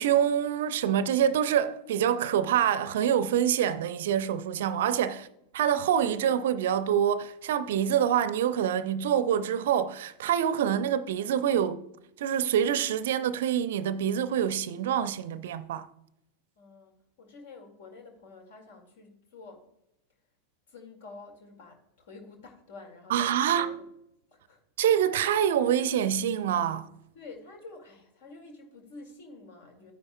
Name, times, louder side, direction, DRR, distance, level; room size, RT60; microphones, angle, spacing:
voice 1, 0.0-5.3 5.5-11.8 12.2-15.9 23.1-23.7 24.8-26.9, right 9 dB, 60° right, 0.5 m, -26 dB
voice 2, 16.6-19.6 20.7-23.8 24.3-24.6 27.1-29.9, left 3 dB, 60° left, 2.1 m, -49 dB
13.0 x 9.6 x 2.3 m
figure-of-eight pair, 90°, 0 cm